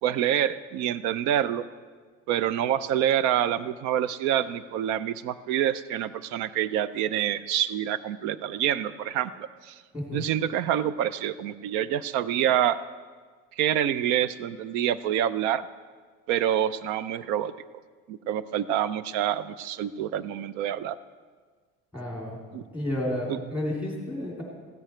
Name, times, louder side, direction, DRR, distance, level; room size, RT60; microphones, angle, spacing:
voice 1, 0.0-1.6 2.3-9.8 10.1-12.8 13.6-15.7 16.3-17.5 18.1-21.0 22.5-22.6 23.3-23.4, right 10 dB, 70° right, 16 dB, 0.6 m, -27 dB
voice 2, 9.9-10.2 21.9-22.4 22.7-24.4, left 1 dB, 5° right, -3 dB, 3.1 m, -31 dB
15.0 x 13.0 x 4.5 m, 1.5 s
cardioid pair, 170°, 29 cm